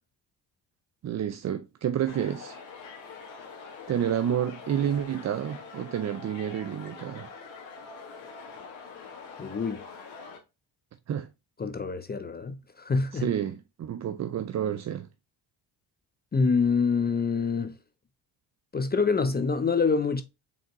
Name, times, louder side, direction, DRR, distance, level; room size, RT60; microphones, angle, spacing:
voice 1, 1.0-2.5 3.9-7.3 11.1-11.3 13.1-15.1, right 9 dB, 40° right, 0.5 m, -29 dB
sound 1, 2.1-10.4, left 5 dB, 80° left, 1.9 m, -44 dB
voice 2, 9.4-9.9 11.6-13.3 16.3-17.8 18.7-20.2, left 5 dB, 20° left, 0.5 m, -26 dB
5.1 x 3.5 x 2.9 m
cardioid pair, 80°, 45 cm